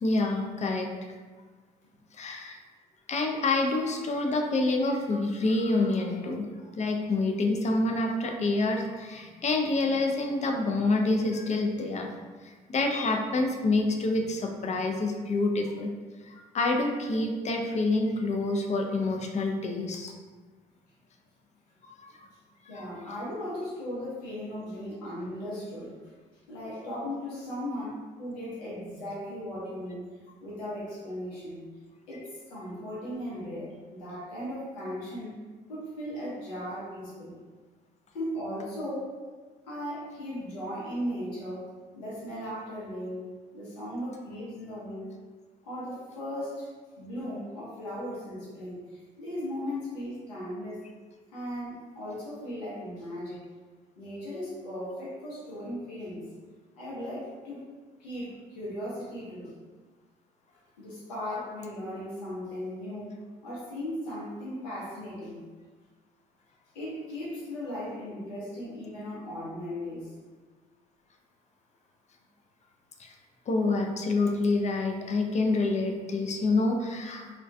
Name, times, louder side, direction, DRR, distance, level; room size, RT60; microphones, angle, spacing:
voice 1, 0.0-0.9 2.1-2.6 3.1-6.5 6.8-12.1 12.7-15.9 16.2-20.1 21.8-22.2 22.8-22.9 73.0-73.1 73.5-77.4, left 2 dB, 35° left, 2 dB, 0.4 m, -27 dB
voice 2, 22.7-26.0 26.5-30.1 30.4-31.6 32.1-35.4 35.7-37.4 38.1-39.2 39.6-41.6 41.9-43.3 43.5-45.1 45.6-46.7 47.0-50.9 51.3-53.4 54.0-56.3 56.7-57.6 58.0-59.5 60.8-65.4 66.7-70.1, equal, 90° left, -8 dB, 0.7 m, -37 dB
2.3 x 2.2 x 2.5 m, 1.4 s
hypercardioid pair, 50°, 21 cm